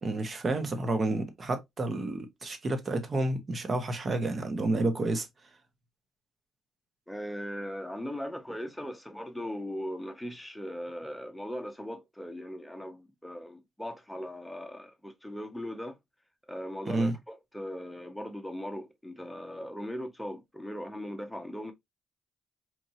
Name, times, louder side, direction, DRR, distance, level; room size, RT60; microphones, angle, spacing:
voice 1, 0.0-5.3 16.9-17.1, right 2 dB, 40° right, 1.1 m, -30 dB
voice 2, 7.1-16.0 16.5-21.7, equal, ahead, 0.9 m, -39 dB
4.5 x 2.6 x 2.7 m
cardioid pair, 90°, 0 cm